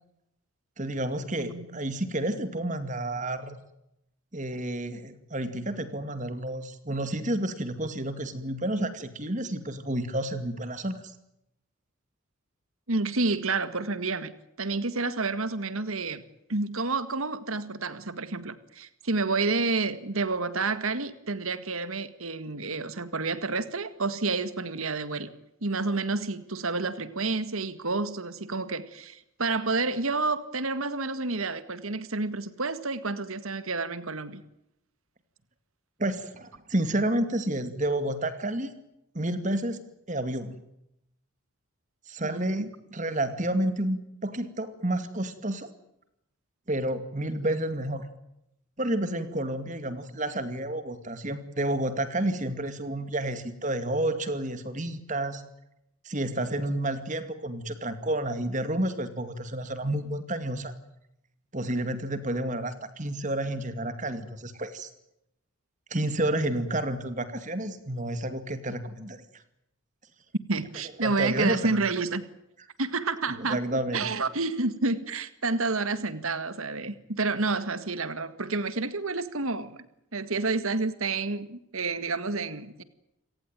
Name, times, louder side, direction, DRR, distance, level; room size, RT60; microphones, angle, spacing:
voice 1, 0.8-3.6 4.3-11.0 36.0-38.7 39.1-40.6 42.1-42.7 42.9-45.7 46.7-48.1 48.8-55.4 56.0-60.7 61.5-64.9 65.9-69.2 71.0-71.8 73.3-74.1, right 1 dB, 35° right, 11 dB, 2.3 m, -30 dB
voice 2, 12.9-14.3 14.6-16.2 16.5-25.3 25.6-34.4 42.2-42.7 70.5-72.2 72.8-73.6 73.9-79.8 80.1-82.8, right 3 dB, 75° right, 13 dB, 1.9 m, -29 dB
29.5 x 18.0 x 9.1 m, 0.83 s
head